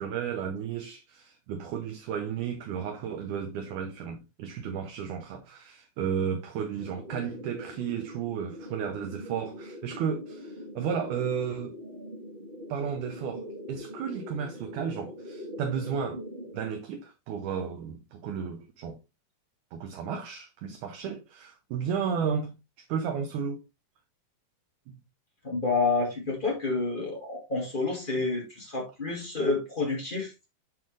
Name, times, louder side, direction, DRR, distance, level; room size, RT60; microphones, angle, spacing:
voice 1, 0.0-11.8 12.7-16.2 16.5-19.0 19.7-22.6 22.9-23.6 24.9-25.0, right 7 dB, 70° right, 2.1 m, -33 dB
sound 1, 6.8-16.8, equal, 45° right, 0.7 m, -42 dB
voice 2, 25.4-30.3, left 3 dB, 50° left, 0.6 m, -29 dB
10.5 x 3.9 x 3.2 m
omnidirectional pair, 4.1 m